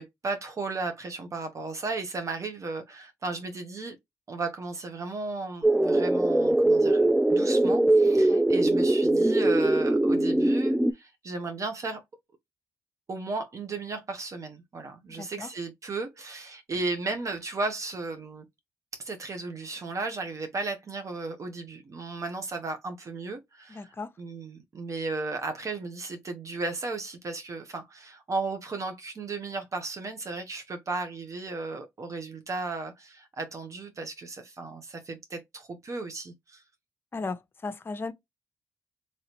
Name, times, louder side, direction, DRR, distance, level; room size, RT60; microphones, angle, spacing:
voice 1, 0.0-4.0 4.3-12.0 13.1-18.4 18.9-36.6, right 3 dB, 50° right, 0.7 m, -35 dB
sound 1, 5.6-10.9, right 1 dB, 5° right, 0.3 m, -22 dB
voice 2, 7.8-8.4 15.2-15.5 23.7-24.1 37.1-38.1, left 3 dB, 35° left, 0.6 m, -37 dB
3.0 x 2.8 x 2.9 m
supercardioid pair, 55°, 7 cm